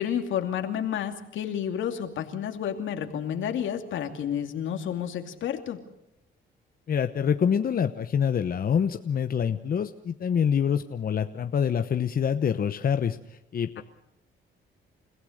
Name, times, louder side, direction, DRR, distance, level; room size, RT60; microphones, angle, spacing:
voice 1, 0.0-5.8 13.8-13.9, left 9 dB, 75° left, 6 dB, 2.6 m, -30 dB
voice 2, 6.9-13.8, left 7 dB, 45° left, 8 dB, 1.0 m, -26 dB
30.0 x 16.0 x 6.6 m, 0.86 s
cardioid pair, 90°, 20 cm